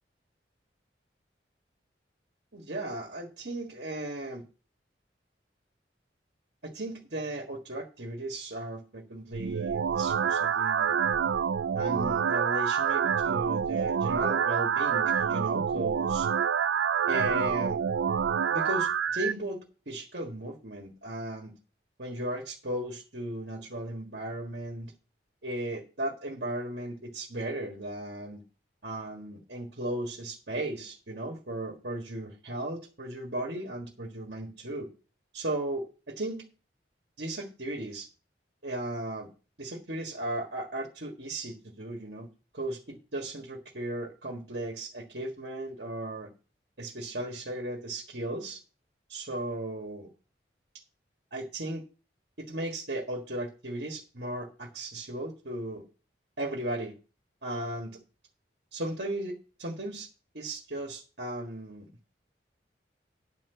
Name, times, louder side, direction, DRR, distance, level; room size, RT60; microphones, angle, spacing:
voice 1, 2.5-4.4 6.6-10.9 11.7-16.3 17.1-17.8 18.5-21.5 22.0-24.9 25.4-28.4 28.8-34.9 35.3-36.4 37.2-38.1 38.6-39.3 39.6-42.3 42.5-46.3 46.8-48.6 49.1-50.1 51.3-51.8 52.4-55.8 56.4-56.9 57.4-58.0 58.7-60.1 60.3-61.9, right 1 dB, 60° right, 1 dB, 1.7 m, -36 dB
sound 1, 9.3-19.3, right 7 dB, 85° right, 0.4 m, -27 dB
10.5 x 4.4 x 7.9 m, 0.34 s
head